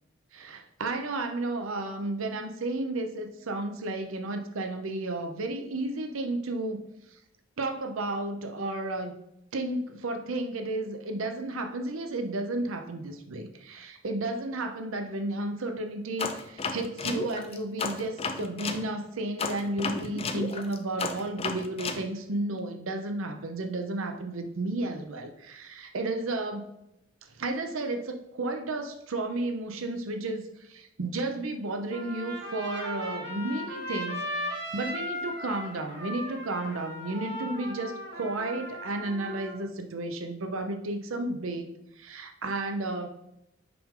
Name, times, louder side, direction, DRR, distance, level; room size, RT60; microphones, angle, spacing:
voice 1, 0.3-6.8 7.1-7.2 7.6-9.1 9.5-26.7 27.2-41.7 42.0-43.1, right 2 dB, 75° right, 6 dB, 0.7 m, -33 dB
sound 1, 16.2-18.8 19.4-22.0, left 4 dB, 30° left, 0.5 m, -33 dB
Trumpet, 31.9-39.6, equal, 50° right, 1.5 m, -37 dB
5.9 x 5.1 x 3.7 m, 0.82 s
head